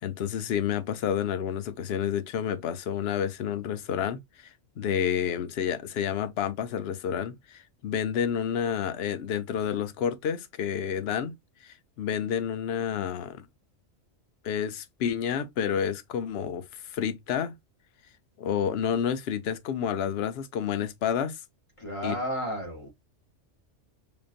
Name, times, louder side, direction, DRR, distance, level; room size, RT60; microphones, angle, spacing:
voice 1, 0.0-4.5 4.8-11.3 11.6-13.5 14.4-17.5 18.4-21.4 22.0-22.2, left 8 dB, 60° left, 0.8 m, -29 dB
voice 2, 21.8-22.9, equal, 25° left, 1.1 m, -32 dB
5.1 x 2.6 x 2.5 m
omnidirectional pair, 1.3 m